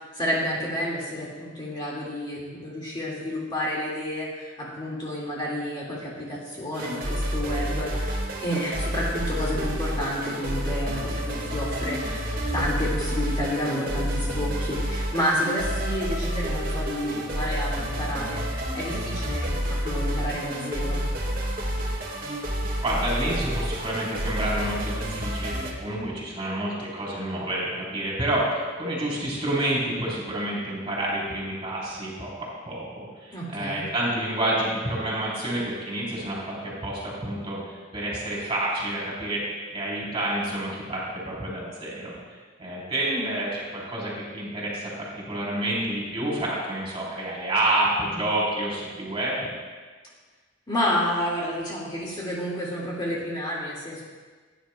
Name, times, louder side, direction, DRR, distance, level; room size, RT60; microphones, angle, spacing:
voice 1, 0.1-21.0 33.3-33.8 43.1-43.4 50.7-54.0, equal, 25° left, -5 dB, 2.0 m, -30 dB
sound 1, 6.7-25.7, equal, 50° right, 1.5 m, -29 dB
voice 2, 22.8-39.4 39.7-42.1 42.6-49.5, right 1 dB, 30° right, -5 dB, 3.6 m, -29 dB
17.0 x 9.8 x 2.2 m, 1.4 s
head